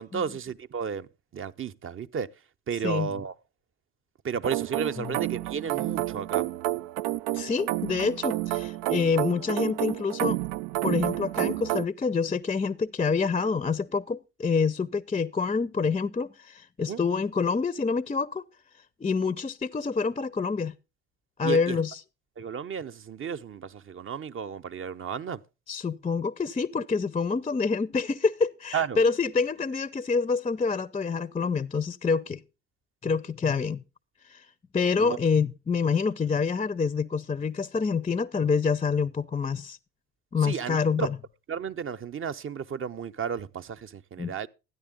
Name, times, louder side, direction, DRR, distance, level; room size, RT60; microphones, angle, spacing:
voice 1, 0.0-2.3 2.7-3.3 4.2-6.5 16.8-17.0 21.4-21.8 22.4-25.4 28.7-29.0 35.0-35.2 40.4-41.1 41.5-44.5, right 7 dB, 35° right, 0.8 m, -33 dB
sound 1, 4.4-11.8, right 16 dB, 65° right, 0.5 m, -30 dB
voice 2, 7.3-10.4 10.8-18.4 19.0-20.7 21.4-22.0 25.7-32.4 33.0-33.8 34.2-34.5 34.7-39.8 40.3-41.2 44.2-44.3, left 5 dB, 15° left, 0.6 m, -27 dB
14.0 x 10.0 x 3.8 m
hypercardioid pair, 55°, 36 cm